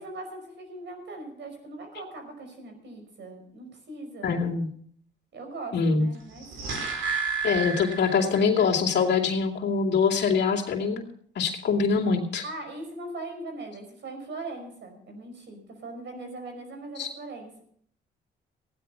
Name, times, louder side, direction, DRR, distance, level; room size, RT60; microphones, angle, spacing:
voice 1, 0.0-4.3 5.3-6.5 12.4-17.5, right 2 dB, 65° right, 5 dB, 5.3 m, -40 dB
voice 2, 4.2-4.7 5.7-6.1 7.4-11.1 11.4-12.4 17.0-17.1, left 5 dB, 60° left, -2 dB, 2.6 m, -24 dB
sound 1, 6.2-8.7 9.0-9.1, right 5 dB, 85° right, 4.5 m, -31 dB
15.5 x 10.5 x 5.6 m, 0.63 s
cardioid pair, 90°, 20 cm